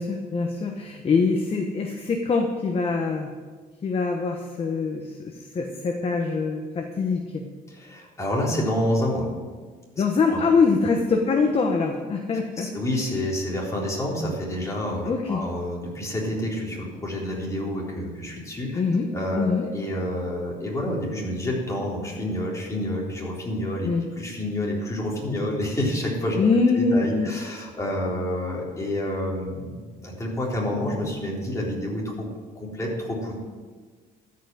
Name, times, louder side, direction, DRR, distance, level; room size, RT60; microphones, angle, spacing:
voice 1, 0.0-3.3 3.8-7.4 10.0-12.7 15.1-15.4 18.7-19.1 19.3-19.6 23.8-24.1 26.4-27.3, left 4 dB, 35° left, 3 dB, 1.1 m, -24 dB
voice 2, 7.7-9.3 10.0-10.1 10.3-10.4 12.6-18.8 19.1-23.9 24.2-26.4 26.8-32.3 32.5-33.3, left 1 dB, 20° left, -4 dB, 3.8 m, -28 dB
13.0 x 5.8 x 7.8 m, 1.4 s
cardioid pair, 110°, 17 cm